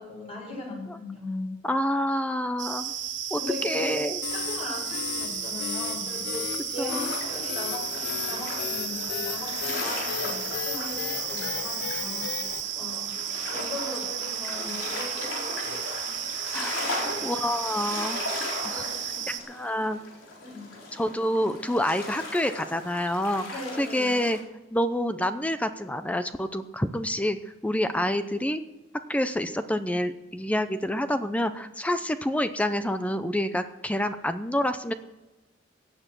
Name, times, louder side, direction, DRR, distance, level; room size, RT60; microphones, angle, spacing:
voice 1, 0.0-1.6 3.3-4.0 4.3-13.2 13.5-16.2 16.9-17.5 18.7-19.4 20.4-20.7 23.5-24.2, left 2 dB, 35° left, -1 dB, 6.1 m, -38 dB
voice 2, 1.6-2.9 3.3-4.2 6.8-7.1 16.4-16.7 17.2-18.2 18.6-18.8 19.3-20.0 20.9-24.4 24.7-27.4 27.6-28.6 29.1-34.9, left 1 dB, 5° left, 10 dB, 0.6 m, -27 dB
sound 1, 2.6-19.4, right 9 dB, 65° right, 1.9 m, -34 dB
sound 2, 4.2-12.6, left 8 dB, 60° left, 0.7 m, -34 dB
sound 3, 6.9-24.4, left 2 dB, 85° left, 3.9 m, -38 dB
16.5 x 9.2 x 6.1 m, 1.1 s
head